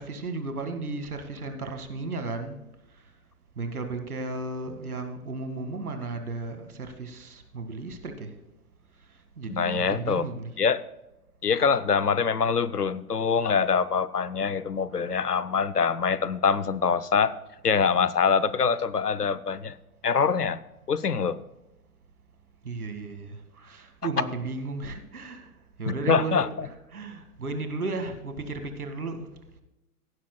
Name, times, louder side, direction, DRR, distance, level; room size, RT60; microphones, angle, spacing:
voice 1, 0.0-2.6 3.6-8.3 9.4-10.6 14.9-15.1 18.3-18.4 18.7-18.8 22.6-25.5 25.8-29.3, right 3 dB, 70° right, 7 dB, 2.0 m, -34 dB
voice 2, 9.5-10.2 10.6-10.8 11.4-17.3 17.6-19.8 20.0-20.6 20.9-21.4 25.9-26.7, left 6 dB, 90° left, 17 dB, 0.7 m, -24 dB
16.0 x 12.0 x 2.2 m, 0.97 s
figure-of-eight pair, 125°, 45 cm